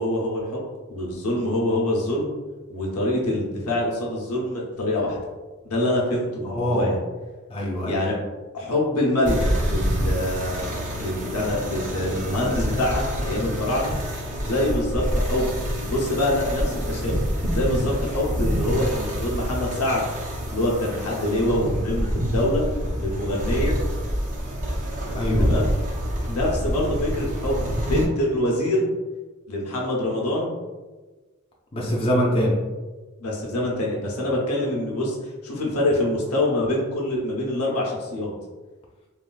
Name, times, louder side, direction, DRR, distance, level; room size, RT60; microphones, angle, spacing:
voice 1, 0.0-2.3 2.7-5.2 5.6-7.0 7.8-8.1 8.5-13.9 14.4-17.2 17.5-20.1 20.5-22.6 23.0-23.8 25.4-25.7 26.3-28.9 29.5-30.5 33.2-38.3, left 1 dB, 90° left, -3 dB, 0.8 m, -25 dB
voice 2, 6.4-7.0 7.5-8.1 25.1-25.5 31.7-32.6, equal, 25° left, -3 dB, 0.4 m, -23 dB
sound 1, 9.3-28.1, equal, 35° right, 0.4 m, -27 dB
3.3 x 2.4 x 2.3 m, 1.3 s
head